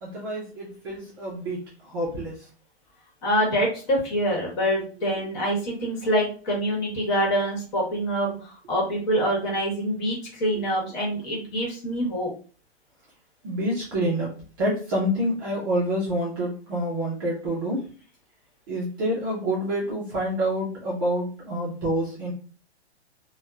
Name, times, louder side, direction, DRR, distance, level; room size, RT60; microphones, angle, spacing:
voice 1, 0.0-2.5 10.5-10.6 13.4-14.3 14.6-17.8 18.7-22.3, equal, 20° right, -5 dB, 0.4 m, -27 dB
voice 2, 3.2-12.3, equal, 45° left, -2 dB, 1.1 m, -25 dB
2.8 x 2.1 x 2.3 m, 0.39 s
hypercardioid pair, 155°, 33 cm